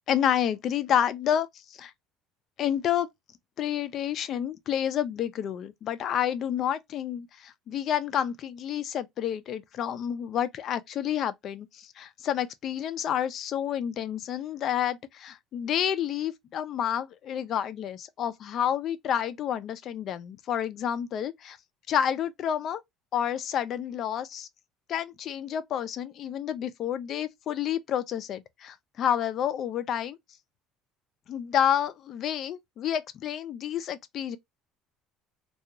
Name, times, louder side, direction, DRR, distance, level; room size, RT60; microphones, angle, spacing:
voice 1, 0.1-1.9 2.6-3.1 3.6-21.6 21.9-22.8 23.1-24.5 24.9-30.2 31.3-34.4, left 9 dB, 50° left, 0.4 m, -29 dB
2.8 x 2.3 x 2.2 m
cardioid pair, 120°, 0 cm